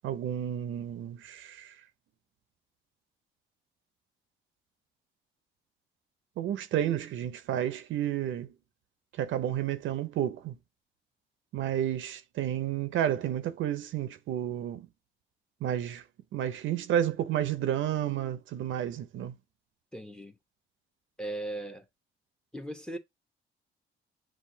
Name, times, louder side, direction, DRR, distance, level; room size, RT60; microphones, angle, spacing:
voice 1, 0.0-1.7 6.4-8.5 9.1-10.6 11.5-14.9 15.6-16.0 16.3-19.3, right 11 dB, 75° right, 0.7 m, -31 dB
voice 2, 19.9-20.4 21.2-21.8 22.5-23.0, right 1 dB, 5° left, 1.0 m, -38 dB
7.5 x 2.5 x 2.7 m
cardioid pair, 90°, 20 cm